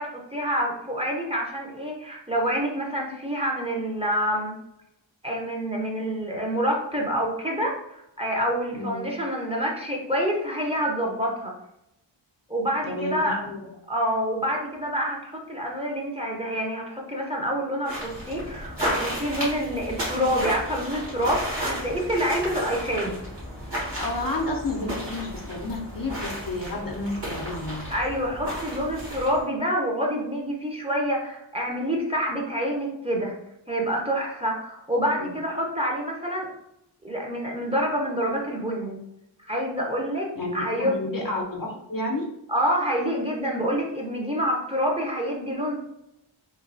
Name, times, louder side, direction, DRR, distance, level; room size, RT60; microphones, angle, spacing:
voice 1, 0.0-4.5 5.2-11.5 12.5-13.4 13.9-23.2 27.9-33.3 33.7-36.5 37.0-39.0 39.5-40.3 40.5-41.0 42.5-45.8, equal, 15° right, -2 dB, 0.6 m, -27 dB
voice 2, 8.7-9.0 12.8-13.6 24.0-27.9 35.2-35.3 40.4-42.3, left 2 dB, 45° left, 0 dB, 0.5 m, -31 dB
sound 1, 17.8-29.4, equal, 60° right, 1.4 m, -33 dB
3.1 x 2.2 x 2.6 m, 0.83 s
wide cardioid pair, 45°, 47 cm